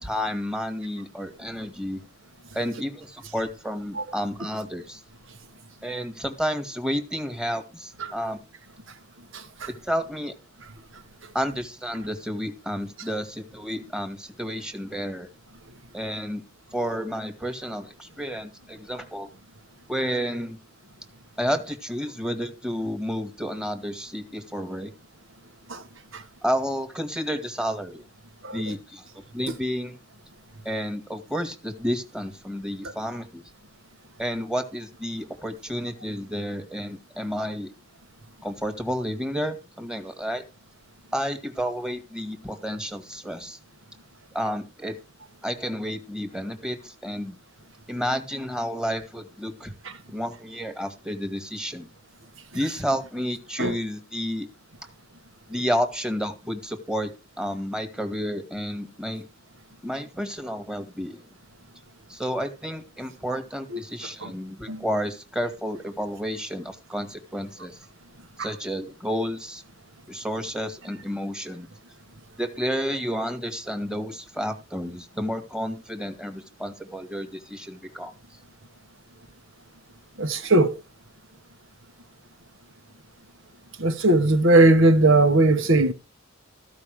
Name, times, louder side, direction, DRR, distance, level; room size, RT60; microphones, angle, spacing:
voice 1, 0.0-2.0 2.5-5.0 5.8-8.4 9.8-10.3 11.3-15.3 15.9-16.4 16.7-19.3 19.9-20.6 21.4-24.9 26.4-28.0 28.5-29.0 29.3-30.0 30.6-33.4 34.2-37.7 38.4-40.4 41.1-43.6 44.3-44.9 45.4-47.4 47.9-49.7 50.1-51.9 52.5-54.5 55.5-57.1 57.4-59.2 59.8-61.2 62.1-67.8 68.4-69.6 70.1-71.7 72.4-78.1, equal, 5° right, 1.8 m, -31 dB
voice 2, 9.3-9.7 25.7-25.8 26.1-26.2 28.4-28.7 53.6-53.7 64.2-64.3 64.7-64.8 80.2-80.8 83.8-85.9, right 2 dB, 70° right, 1.7 m, -19 dB
14.5 x 5.4 x 6.5 m
head